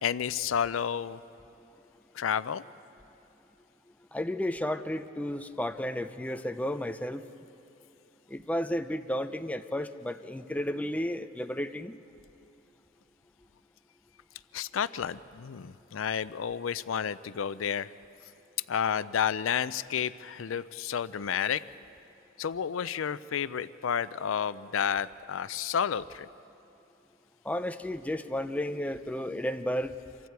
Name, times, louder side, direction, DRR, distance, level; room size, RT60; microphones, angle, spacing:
voice 1, 0.0-1.2 2.1-2.6 14.5-17.9 18.7-21.6 22.4-26.3, left 8 dB, 85° left, 16 dB, 0.4 m, -31 dB
voice 2, 4.1-7.2 8.3-12.0 27.4-29.9, left 1 dB, 5° left, 8 dB, 0.5 m, -32 dB
28.0 x 23.5 x 4.7 m, 2.7 s
head